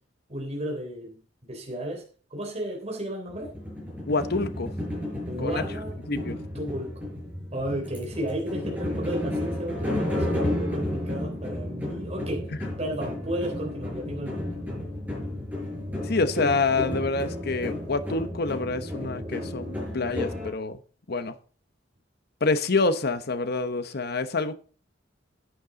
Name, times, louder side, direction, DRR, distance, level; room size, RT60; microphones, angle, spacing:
voice 1, 0.3-2.0 2.3-3.5 5.3-6.0 6.6-7.1 7.5-12.5 12.8-14.6, right 1 dB, 35° right, 0 dB, 3.5 m, -33 dB
sound 1, 3.3-20.5, left 1 dB, 10° right, 5.8 m, -32 dB
voice 2, 4.1-4.7 5.4-5.6 6.1-6.4 16.0-20.8 21.1-21.4 22.4-24.5, left 3 dB, 55° left, 11 dB, 1.0 m, -27 dB
11.0 x 9.5 x 4.0 m, 0.40 s
head